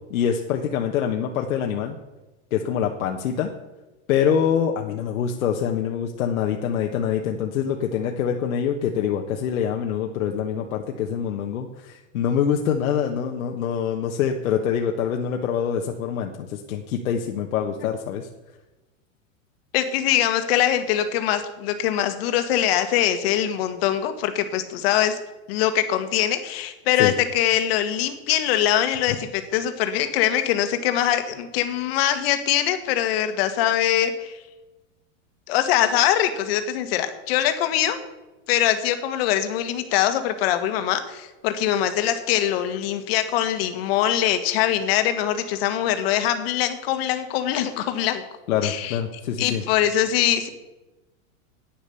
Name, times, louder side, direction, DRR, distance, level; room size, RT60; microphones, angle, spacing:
voice 1, 0.1-2.0 2.5-3.5 4.1-18.3 27.0-27.1 48.5-49.6, left 8 dB, 85° left, 2 dB, 1.3 m, -25 dB
voice 2, 19.7-25.2 25.5-34.4 35.5-38.0 38.5-48.2 48.6-49.0 49.4-50.5, left 11 dB, 45° left, 9 dB, 1.5 m, -23 dB
10.5 x 9.5 x 6.9 m, 1.1 s
supercardioid pair, 165°, 40 cm